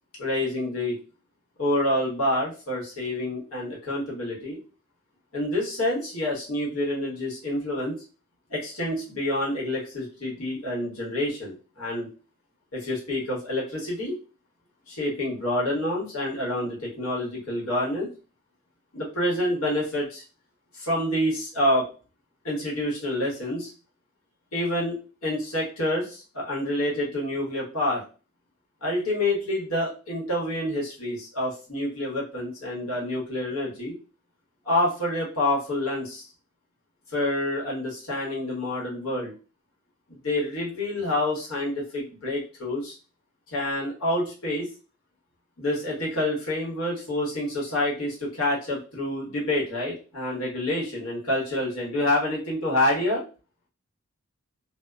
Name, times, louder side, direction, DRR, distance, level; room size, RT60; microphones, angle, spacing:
voice 1, 0.2-1.0 1.6-4.6 5.3-8.0 8.5-12.1 12.7-14.2 14.9-18.1 18.9-20.2 20.7-21.9 22.4-23.7 24.5-28.0 28.8-34.0 34.6-36.3 37.1-39.3 40.1-42.9 43.5-44.7 45.6-53.2, left 1 dB, 85° left, -5 dB, 1.1 m, -27 dB
2.7 x 2.1 x 2.3 m, 0.35 s
head